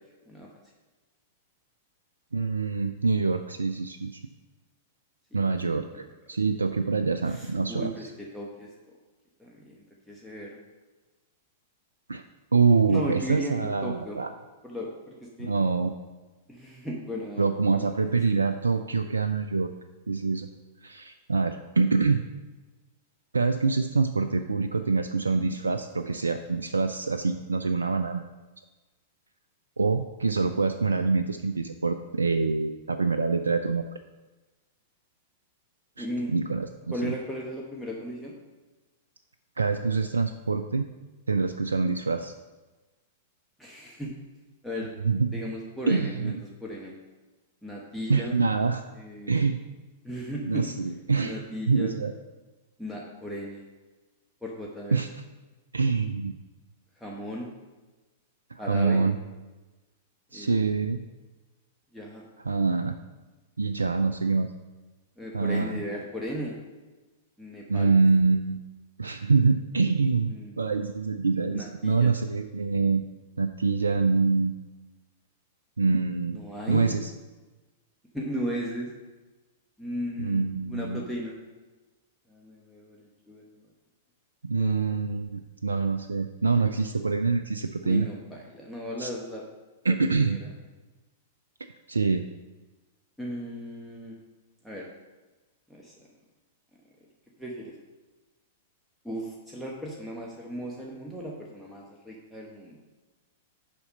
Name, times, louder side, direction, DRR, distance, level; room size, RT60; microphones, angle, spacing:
voice 1, 2.3-4.2 5.3-7.9 12.1-12.2 12.5-14.3 15.4-15.9 17.4-19.7 20.1-20.5 20.8-22.2 23.3-28.2 29.8-33.9 36.0-37.1 39.6-40.9 41.3-42.3 45.0-45.3 45.9-46.3 48.1-48.8 49.3-49.6 50.4-51.4 51.7-52.1 54.9-55.1 55.7-56.4 58.5-59.2 60.3-61.0 62.4-62.9 63.6-64.5 65.3-65.8 67.7-68.6 69.0-73.0 73.4-74.5 75.8-76.4 76.7-77.1 80.2-81.0 84.4-88.1 89.0-89.1 89.8-90.4 91.9-92.2, right 4 dB, 75° right, 8 dB, 0.3 m, -25 dB
voice 2, 7.3-8.7 9.4-10.6 12.9-14.2 14.6-15.5 16.5-17.4 17.7-17.9 36.0-36.3 36.9-38.4 43.6-44.2 44.6-44.9 45.3-46.9 47.6-48.3 48.9-49.3 50.0-50.7 51.2-51.9 52.8-53.6 54.4-55.0 57.0-57.5 58.6-59.0 60.3-60.7 61.9-62.2 65.2-66.6 67.4-67.9 70.3-70.6 71.5-72.1 76.3-77.0 78.1-78.9 79.8-80.4 80.7-81.3 82.3-83.4 84.6-85.0 87.8-89.4 89.9-90.5 93.2-94.1 94.6-94.9 95.7-96.1 97.4-97.7 99.0-102.8, equal, ahead, -4 dB, 1.0 m, -36 dB
6.9 x 5.1 x 5.5 m, 1.2 s
figure-of-eight pair, 100°, 0 cm